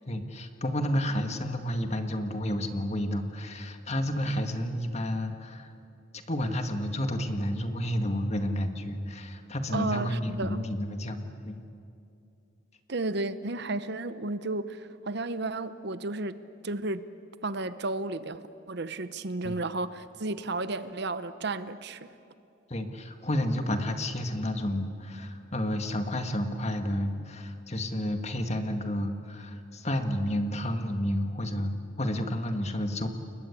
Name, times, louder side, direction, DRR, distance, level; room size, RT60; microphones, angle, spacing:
voice 1, 0.1-5.7 6.1-11.6 19.4-19.5 22.7-33.1, equal, 35° left, 6 dB, 1.8 m, -31 dB
voice 2, 9.7-10.6 12.9-16.4 16.6-17.1 17.4-22.1, right 2 dB, 55° right, 13 dB, 0.9 m, -33 dB
30.0 x 21.5 x 8.5 m, 2.6 s
head